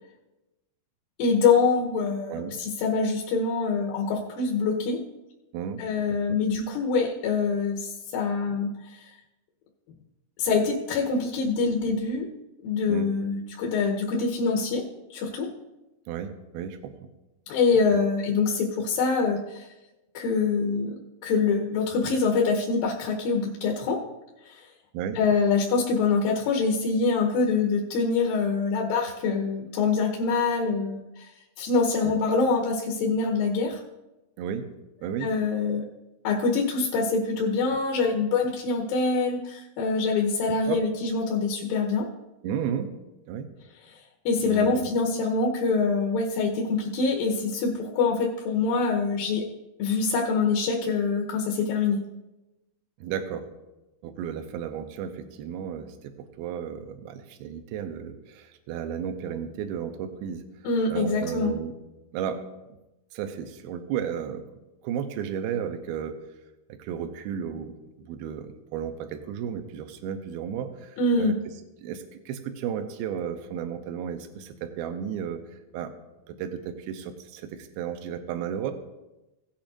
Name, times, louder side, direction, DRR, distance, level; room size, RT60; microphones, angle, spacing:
voice 1, 1.2-5.0 5.8-9.1 10.4-12.3 12.6-14.8 15.1-15.5 17.5-19.7 20.1-24.0 24.5-24.6 25.1-31.3 31.6-33.8 35.2-35.8 36.2-42.1 43.9-44.0 44.3-49.4 49.8-52.0 60.6-61.5 71.0-71.3, left 4 dB, 75° left, -1 dB, 2.6 m, -25 dB
voice 2, 16.1-16.9 17.9-18.0 24.9-25.2 32.0-32.4 34.4-34.7 35.0-35.3 40.7-40.8 42.4-42.9 43.3-43.5 44.4-44.9 53.0-53.4 54.0-60.4 60.9-61.7 62.1-62.4 63.1-64.4 64.8-66.2 66.7-71.3 71.8-75.4 75.7-75.9 76.3-78.7, right 8 dB, 80° right, 6 dB, 2.6 m, -33 dB
17.0 x 8.6 x 2.6 m, 1.0 s
omnidirectional pair, 4.4 m